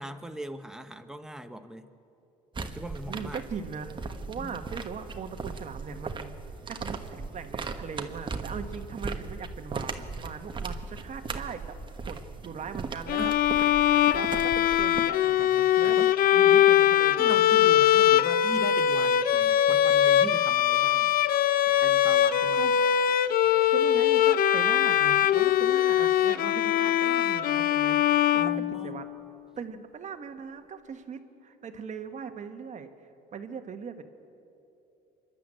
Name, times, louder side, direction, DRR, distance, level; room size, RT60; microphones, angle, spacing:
voice 1, 0.0-1.9 2.6-3.4 4.3-4.5 13.2-13.4 15.8-16.1 17.2-21.1 21.8-22.7 28.3-29.0, right 1 dB, 5° right, 8 dB, 1.1 m, -40 dB
sound 1, 2.5-15.0, right 4 dB, 30° right, 1.3 m, -38 dB
voice 2, 3.1-6.3 6.6-11.7 12.1-13.3 13.9-16.0 16.3-17.4 21.7-21.8 22.5-22.7 23.7-29.0 29.6-32.9 33.3-34.0, right 6 dB, 45° right, 7 dB, 1.6 m, -39 dB
Bowed string instrument, 13.1-29.2, left 11 dB, 60° left, 0.6 m, -22 dB
26.0 x 11.5 x 9.0 m, 2.8 s
cardioid pair, 110°, 17 cm